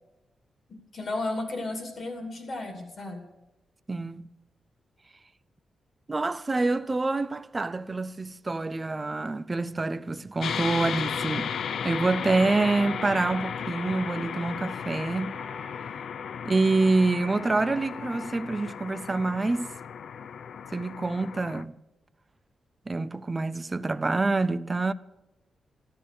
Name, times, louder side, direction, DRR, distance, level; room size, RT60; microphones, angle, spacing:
voice 1, 0.7-3.2, left 2 dB, 45° left, 2.7 m, -34 dB
voice 2, 3.9-4.2 6.1-11.5 11.8-15.4 16.4-19.7 20.7-21.7 22.9-24.9, right 3 dB, 20° right, 0.5 m, -26 dB
sound 1, 10.4-21.6, left 7 dB, 65° left, 0.5 m, -35 dB
sound 2, 12.8-16.0 16.8-18.3, equal, 10° left, 1.9 m, -47 dB
13.5 x 13.0 x 6.7 m
wide cardioid pair, 150°, 0 cm